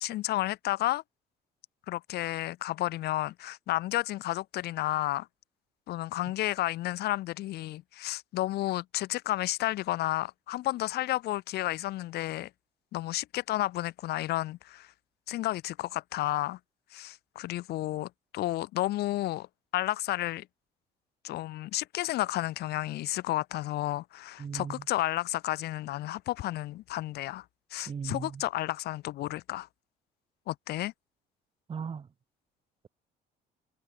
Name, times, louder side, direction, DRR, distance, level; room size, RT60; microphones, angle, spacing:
voice 1, 0.0-1.0 1.9-5.3 5.9-12.5 12.9-14.9 15.3-16.6 16.9-19.5 19.7-20.5 21.2-27.4 27.7-29.7 30.5-30.9, left 16 dB, 70° left, 1.0 m, -32 dB
voice 2, 24.4-24.9 27.9-28.4 31.7-32.1, right 6 dB, 30° right, 1.3 m, -37 dB
cardioid pair, 110°, 17 cm